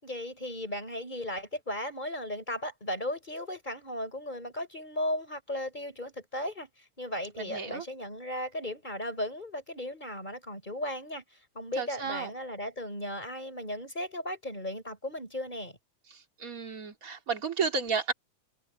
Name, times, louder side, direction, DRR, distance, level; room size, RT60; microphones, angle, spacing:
voice 1, 0.0-6.7 7.0-11.2 11.5-15.8, left 1 dB, 15° left, 5.1 m, -36 dB
voice 2, 7.4-7.8 11.8-12.3 16.4-18.1, right 5 dB, 30° right, 2.8 m, -32 dB
omnidirectional pair, 3.5 m